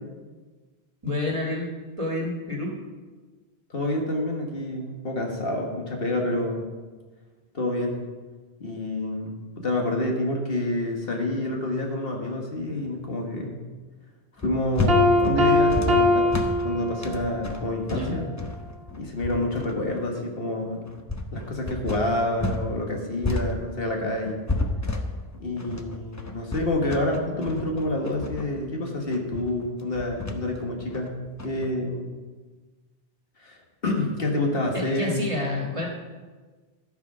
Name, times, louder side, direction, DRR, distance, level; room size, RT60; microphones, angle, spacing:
voice 1, 1.0-1.7 2.0-2.7 17.9-18.2 34.7-35.9, left 2 dB, 30° right, -1 dB, 1.7 m, -28 dB
voice 2, 3.7-6.6 7.5-8.0 8.6-13.6 14.4-16.3 16.6-18.3 19.0-20.8 21.3-24.5 25.4-31.1 31.4-32.1 33.4-35.2, left 1 dB, 65° left, 1 dB, 1.7 m, -28 dB
sound 1, 14.4-22.7 22.9-31.7, left 2 dB, 20° left, 0.7 m, -31 dB
Piano, 14.9-17.4, left 2 dB, 70° right, 1.4 m, -21 dB
13.5 x 4.9 x 6.0 m, 1.3 s
omnidirectional pair, 1.1 m